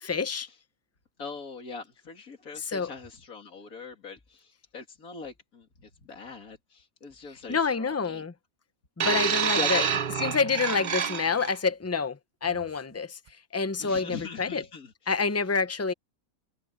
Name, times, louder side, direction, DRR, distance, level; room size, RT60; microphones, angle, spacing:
voice 1, 0.0-0.5 2.7-2.9 7.5-8.3 9.0-9.8 10.2-13.2 13.5-14.6 15.1-15.9, left 5 dB, 25° left, 0.3 m, -27 dB
voice 2, 1.2-8.2 9.4-9.9 13.8-14.9, left 4 dB, 75° left, 3.1 m, -41 dB
sound 1, 9.0-11.5 12.5-12.6, right 7 dB, 45° right, 0.6 m, -28 dB
omnidirectional pair, 1.5 m